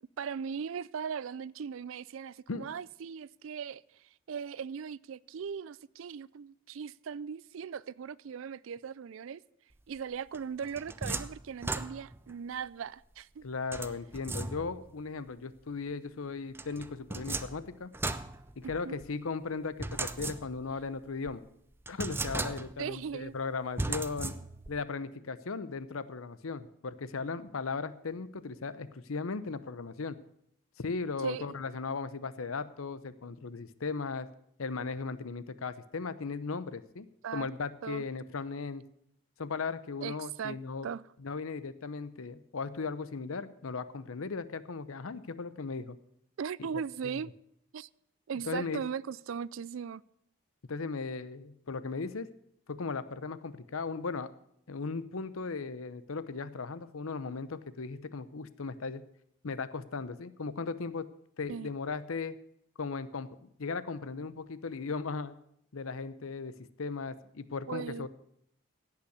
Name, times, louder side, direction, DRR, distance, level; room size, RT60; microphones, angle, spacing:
voice 1, 0.2-3.8 4.3-9.4 9.9-13.4 18.6-19.0 22.8-23.4 31.2-31.4 37.2-37.5 37.8-38.1 40.0-40.6 40.8-41.0 46.4-47.3 47.7-47.9 48.3-50.0 61.5-61.7 67.7-68.1, right 7 dB, 75° right, 0.4 m, -38 dB
sound 1, 10.3-12.3 13.7-14.9 16.5-19.1 19.8-20.8 21.3-21.4 21.9-22.9 23.8-24.8, right 2 dB, 10° right, 0.4 m, -37 dB
voice 2, 13.4-17.9 18.6-21.4 21.9-24.3 24.7-30.2 30.8-34.3 34.6-37.1 37.3-38.8 39.4-40.9 41.2-46.0 46.6-47.1 48.5-48.8 50.7-52.3 52.7-54.3 54.7-59.0 59.4-61.1 61.4-62.4 62.8-65.3 65.7-68.1, left 4 dB, 90° left, 0.7 m, -37 dB
16.5 x 5.8 x 8.0 m
head